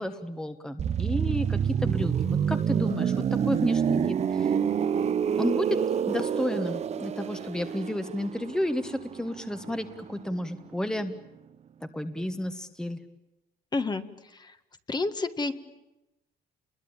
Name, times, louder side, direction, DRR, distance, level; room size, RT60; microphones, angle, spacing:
voice 1, 0.0-4.6 5.4-5.8 6.0-11.1 11.9-13.0, left 1 dB, 5° left, 9 dB, 1.4 m, -32 dB
sound 1, 0.8-10.4 10.7-10.9, right 8 dB, 40° right, 0.9 m, -28 dB
voice 2, 13.7-14.0 14.3-14.5 14.9-15.5, left 3 dB, 25° left, 9 dB, 1.6 m, -29 dB
28.5 x 21.5 x 8.9 m, 0.95 s
cardioid pair, 110°, 17 cm